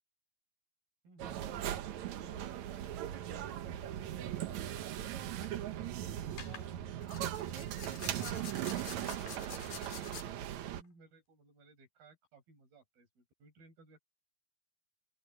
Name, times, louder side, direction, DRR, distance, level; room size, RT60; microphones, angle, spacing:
voice 1, 1.0-1.8 2.2-5.7 6.0-7.1 8.0-14.0, right 4 dB, 60° right, 8.9 m, -60 dB
sound 1, 1.2-10.8, right 11 dB, 80° right, 1.7 m, -39 dB
sound 2, 5.2-5.5 6.4-6.7 7.0-10.3, left 7 dB, 60° left, 4.7 m, -48 dB
open air
omnidirectional pair, 4.8 m